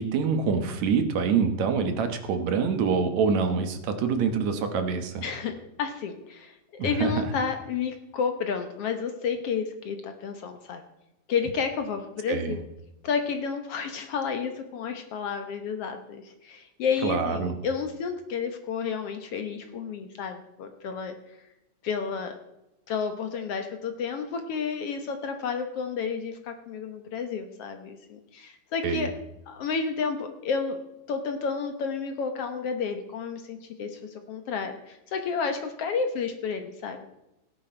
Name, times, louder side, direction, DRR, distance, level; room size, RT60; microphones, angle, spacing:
voice 1, 0.0-5.2 6.8-7.3 12.3-12.6 17.0-17.5 28.8-29.1, right 5 dB, 70° right, 7 dB, 2.5 m, -26 dB
voice 2, 5.2-10.8 11.3-12.6 13.0-21.1 21.8-22.4 22.9-29.1 29.5-30.8 31.1-37.1, left 6 dB, 60° left, 6 dB, 1.8 m, -31 dB
17.0 x 10.0 x 4.4 m, 0.93 s
omnidirectional pair, 3.3 m